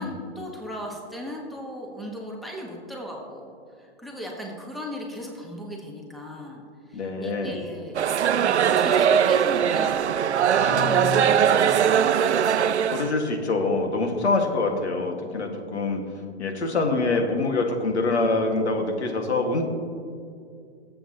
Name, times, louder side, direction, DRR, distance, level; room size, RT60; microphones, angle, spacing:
voice 1, 0.0-3.5 3.8-6.6 6.9-8.0 8.4-12.2, equal, ahead, -1 dB, 1.3 m, -37 dB
voice 2, 6.9-7.6 12.9-16.0 16.4-19.6, left 3 dB, 80° left, 3 dB, 1.9 m, -25 dB
sound 1, 7.9-13.1, right 8 dB, 85° right, 0.6 m, -20 dB
Guitar, 10.6-11.9, left 7 dB, 30° left, 0.5 m, -34 dB
20.0 x 7.7 x 2.9 m, 2.3 s
hypercardioid pair, 135°, 33 cm